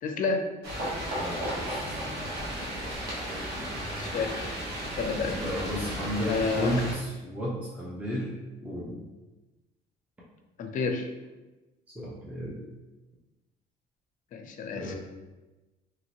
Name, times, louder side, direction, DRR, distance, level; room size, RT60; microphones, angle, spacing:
voice 1, 0.0-0.5 4.0-5.3 6.3-6.8 10.6-11.1 14.3-14.9, left 4 dB, 50° left, 5 dB, 0.5 m, -30 dB
sound 1, 0.6-6.9, equal, 70° right, 1.2 m, -34 dB
voice 2, 1.1-1.9 5.2-8.3 8.6-9.0 11.9-12.6 14.7-14.9, equal, 10° right, -6 dB, 0.6 m, -33 dB
3.0 x 2.6 x 2.9 m, 1.1 s
cardioid pair, 110°, 17 cm